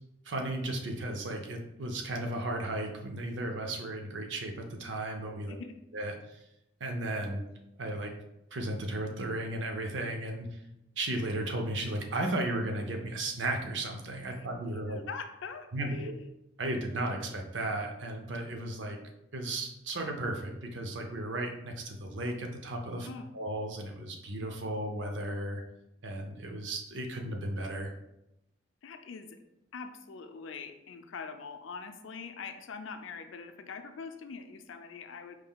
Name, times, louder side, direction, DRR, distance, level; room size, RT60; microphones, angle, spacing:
voice 1, 0.2-5.5 5.9-6.4 6.8-7.4 7.8-8.1 8.5-10.6 11.0-15.0 15.7-16.1 16.6-19.0 19.3-23.1 23.3-25.6 26.0-27.9, right 1 dB, 65° right, 3 dB, 0.6 m, -35 dB
voice 2, 5.5-5.8 14.3-14.5 14.9-16.3 23.0-23.3 28.8-29.4 29.7-35.3, left 5 dB, 75° left, 7 dB, 0.4 m, -43 dB
4.7 x 3.6 x 2.3 m, 0.86 s
head